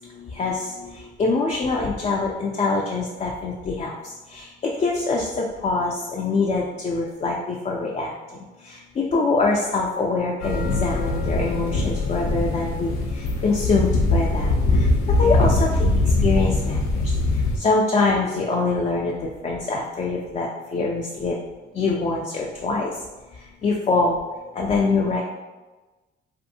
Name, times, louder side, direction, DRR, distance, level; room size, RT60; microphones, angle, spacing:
voice 1, 0.1-4.0 4.3-8.1 8.6-15.7 16.2-17.1 17.5-21.4 21.7-22.9 23.6-24.2 24.6-25.3, left 3 dB, 35° left, -2 dB, 0.3 m, -24 dB
sound 1, 10.4-17.6, left 2 dB, 90° left, 0.5 m, -22 dB
2.6 x 2.4 x 2.7 m, 1.2 s
cardioid pair, 90°, 20 cm